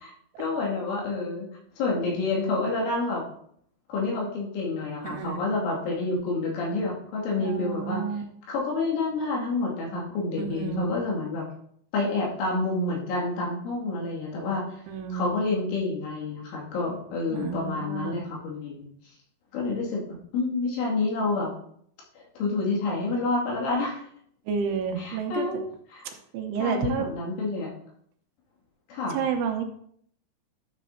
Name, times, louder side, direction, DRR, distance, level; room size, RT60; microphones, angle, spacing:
voice 1, 0.4-1.5 1.8-3.2 3.9-8.0 8.5-11.4 11.9-14.6 15.1-18.9 19.5-21.5 22.2-24.0 25.0-26.0 26.6-27.7 28.9-29.2, left 3 dB, 75° left, -4 dB, 4.8 m, -28 dB
voice 2, 5.0-5.4 7.3-8.2 10.4-10.9 14.9-15.3 17.3-18.1 24.5-25.5 26.3-27.1 29.1-29.7, right 6 dB, 85° right, 4 dB, 3.3 m, -30 dB
12.0 x 7.3 x 2.8 m, 0.64 s
omnidirectional pair, 5.6 m